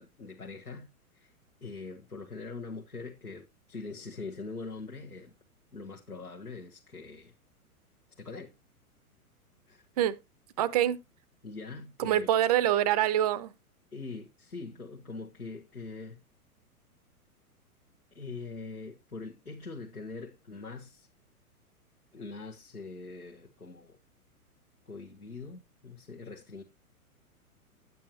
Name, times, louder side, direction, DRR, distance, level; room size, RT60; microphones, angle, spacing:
voice 1, 0.0-1.3 1.6-5.3 5.7-7.3 8.2-8.5 9.7-9.9 10.6-10.7 11.4-12.3 13.9-16.2 18.1-21.1 22.1-24.0 24.9-26.6, left 3 dB, 90° left, 1.3 m, -43 dB
voice 2, 10.6-11.0 12.0-13.5, right 11 dB, 25° right, 0.5 m, -25 dB
9.2 x 8.5 x 2.8 m
figure-of-eight pair, 110°, 45 cm